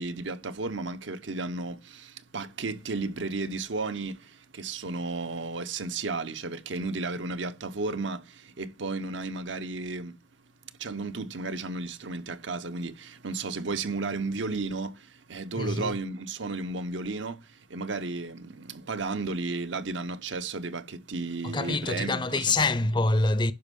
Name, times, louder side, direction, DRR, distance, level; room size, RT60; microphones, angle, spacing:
voice 1, 0.0-10.2 10.8-22.5, right 3 dB, 85° right, 0.9 m, -33 dB
voice 2, 15.6-15.9 21.4-23.5, left 2 dB, 25° left, 0.6 m, -26 dB
11.5 x 5.4 x 5.3 m
head